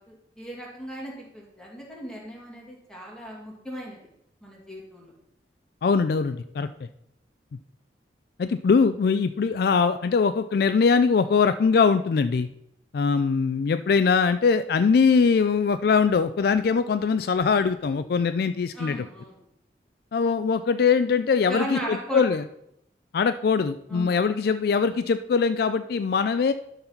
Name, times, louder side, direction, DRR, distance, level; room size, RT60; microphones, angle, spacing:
voice 1, 0.0-4.1 4.4-5.1 18.7-19.4 21.5-22.4 23.9-24.2, equal, 5° left, -3 dB, 2.3 m, -36 dB
voice 2, 5.8-6.7 8.4-12.5 12.9-19.1 20.1-22.4 23.1-26.5, left 5 dB, 60° left, 11 dB, 0.3 m, -22 dB
11.5 x 4.0 x 5.8 m, 0.77 s
head